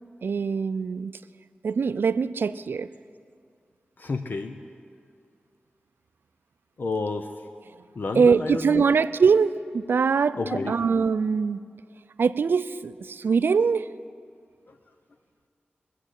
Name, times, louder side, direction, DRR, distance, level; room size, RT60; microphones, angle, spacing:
voice 1, 0.2-1.2 1.6-2.9 8.1-11.6 12.2-13.9, right 5 dB, 75° right, 14 dB, 0.4 m, -23 dB
voice 2, 4.0-4.6 6.8-7.3 8.0-8.8 10.3-10.7, left 3 dB, 60° left, 6 dB, 0.7 m, -30 dB
22.0 x 7.5 x 8.1 m, 2.3 s
wide cardioid pair, 90°, 4 cm